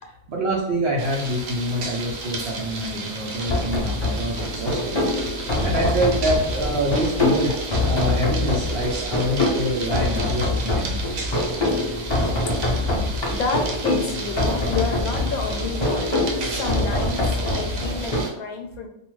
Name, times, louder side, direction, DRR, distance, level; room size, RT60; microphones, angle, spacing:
voice 1, 0.3-4.9 5.6-7.6 7.8-11.0, right 1 dB, 65° right, -3 dB, 0.6 m, -26 dB
sound 1, 1.0-18.3, right 3 dB, 85° right, 1.1 m, -33 dB
sound 2, 3.5-18.2, left 2 dB, 45° left, 0.3 m, -24 dB
voice 2, 12.9-18.9, left 4 dB, 80° left, 4 dB, 1.0 m, -30 dB
2.4 x 2.3 x 3.0 m, 0.78 s
omnidirectional pair, 1.5 m